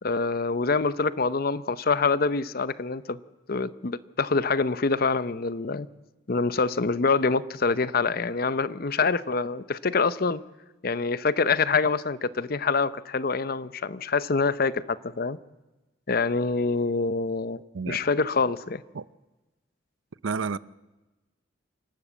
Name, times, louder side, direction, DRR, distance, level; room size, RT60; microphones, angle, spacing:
voice 1, 0.0-3.2 3.5-5.9 6.3-10.4 10.8-15.4 16.1-17.6 17.9-18.8, left 4 dB, 50° left, 0.7 m, -25 dB
voice 2, 20.2-20.6, right 5 dB, 85° right, 0.6 m, -30 dB
27.5 x 12.0 x 8.4 m
head